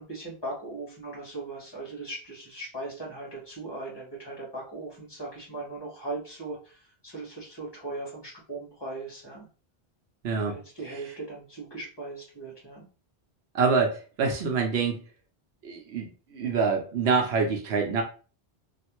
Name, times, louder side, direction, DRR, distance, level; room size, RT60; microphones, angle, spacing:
voice 1, 0.0-9.5 10.5-12.9, right 2 dB, 25° left, -4 dB, 1.4 m, -39 dB
voice 2, 13.5-15.0 15.6-18.0, right 5 dB, 80° right, 3 dB, 0.9 m, -26 dB
3.1 x 2.5 x 2.9 m, 0.37 s
omnidirectional pair, 1.1 m